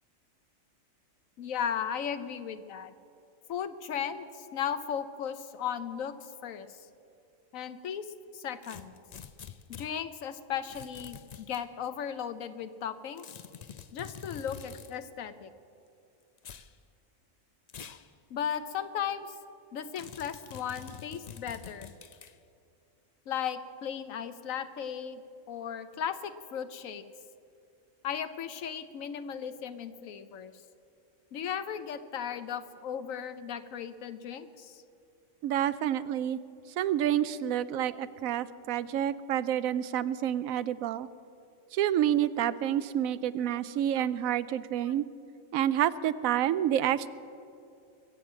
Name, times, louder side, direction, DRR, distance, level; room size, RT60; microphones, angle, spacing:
voice 1, 1.4-2.9 3.5-6.1 6.4-6.7 7.5-8.1 8.3-8.9 9.7-13.3 13.9-15.5 17.9-18.0 18.3-19.3 19.7-21.9 23.3-25.2 25.5-27.0 28.0-30.5 31.3-34.8, left 8 dB, 75° left, 12 dB, 1.1 m, -36 dB
sound 1, 8.6-9.9 10.7-11.6 13.2-14.9 16.4-16.7 17.7-18.1 18.5-18.6 20.0-22.3, left 8 dB, 60° left, 0.4 m, -46 dB
voice 2, 35.4-36.4 36.8-41.1 41.7-45.0 45.5-47.1, right 11 dB, 85° right, 16 dB, 1.0 m, -28 dB
22.0 x 7.9 x 7.4 m, 2.6 s
omnidirectional pair, 1.4 m